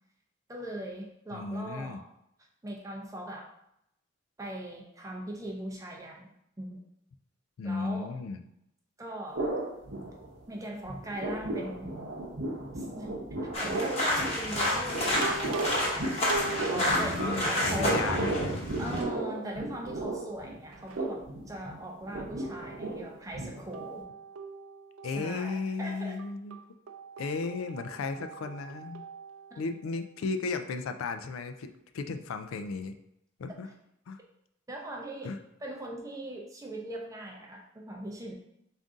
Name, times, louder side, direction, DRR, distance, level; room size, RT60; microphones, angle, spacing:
voice 1, 0.5-2.1 2.6-3.5 4.4-6.8 7.6-8.1 9.0-9.5 10.5-11.9 12.7-13.1 13.6-16.1 16.7-17.2 17.5-18.3 18.8-24.1 25.1-26.2 29.5-29.6 34.7-35.3 35.6-38.3, right 1 dB, 15° right, 1 dB, 0.5 m, -40 dB
voice 2, 1.3-2.0 7.6-8.4 16.7-18.6 25.0-26.6 27.2-29.0 29.6-33.0 33.4-33.7 34.1-34.2 35.2-35.4, left 4 dB, 90° left, 8 dB, 0.4 m, -35 dB
sound 1, 9.3-10.6 10.9-24.0, right 2 dB, 65° right, 0.7 m, -35 dB
sound 2, 13.5-19.0, left 1 dB, 30° left, 1.0 m, -29 dB
sound 3, 15.2-17.1 17.7-18.5 18.9-19.5 19.9-21.1 22.4-23.2 23.7-30.0, right 4 dB, 80° right, 0.3 m, -42 dB
3.7 x 2.5 x 3.6 m, 0.79 s
head